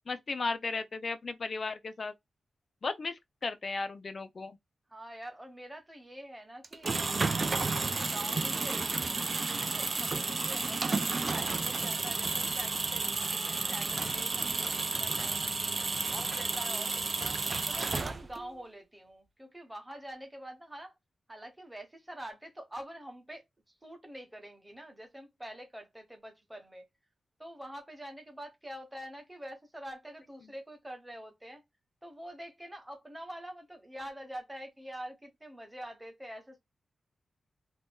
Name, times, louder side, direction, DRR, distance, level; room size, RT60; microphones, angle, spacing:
voice 1, 0.1-2.1 2.8-4.6, left 3 dB, 40° left, 0.4 m, -35 dB
voice 2, 4.9-6.9 7.2-9.2 9.5-13.1 13.3-15.8 16.1-17.4 17.7-20.9 21.3-23.4 23.8-26.8 27.4-31.6 32.0-36.6, right 1 dB, 10° right, 0.9 m, -46 dB
sound 1, 6.6-18.5, right 3 dB, 30° right, 0.4 m, -32 dB
2.6 x 2.2 x 3.5 m
wide cardioid pair, 170°, 0 cm